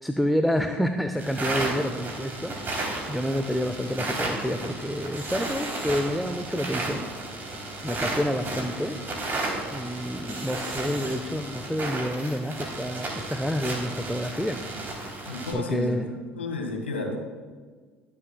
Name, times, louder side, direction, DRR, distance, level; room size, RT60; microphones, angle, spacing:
voice 1, 0.0-7.1 7.8-9.0 9.7-14.6 15.5-16.1, equal, ahead, 6 dB, 0.6 m, -28 dB
sound 1, 1.2-15.5, right 2 dB, 35° right, 3.3 m, -33 dB
voice 2, 15.3-16.0 16.3-17.2, left 3 dB, 85° left, 2 dB, 1.6 m, -31 dB
22.0 x 7.7 x 2.3 m, 1.5 s
hypercardioid pair, 65°, 6 cm